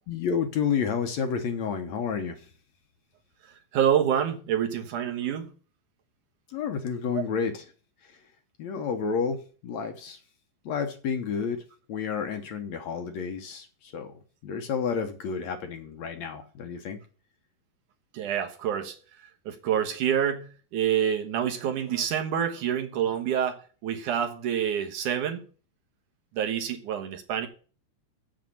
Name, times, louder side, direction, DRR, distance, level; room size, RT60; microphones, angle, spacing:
voice 1, 0.1-2.5 6.5-7.7 8.0-8.2 8.6-10.2 10.7-11.6 11.9-14.1 14.4-17.0, left 6 dB, 65° left, 2.1 m, -30 dB
voice 2, 3.7-5.5 7.1-7.2 18.1-19.0 19.5-25.5 26.3-27.5, right 9 dB, 70° right, 2.6 m, -27 dB
7.8 x 7.6 x 7.1 m
omnidirectional pair, 3.9 m